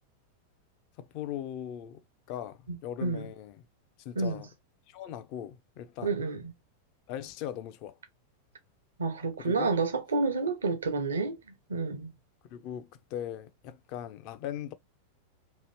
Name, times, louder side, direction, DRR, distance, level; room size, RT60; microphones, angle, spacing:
voice 1, 1.0-3.6 4.0-4.5 4.9-6.2 7.1-8.0 9.4-9.8 12.4-14.7, left 10 dB, 45° left, 0.5 m, -39 dB
voice 2, 6.0-6.4 9.0-11.3 11.7-12.1, right 4 dB, 70° right, 0.7 m, -29 dB
3.0 x 2.5 x 3.2 m
figure-of-eight pair, 90°, 0 cm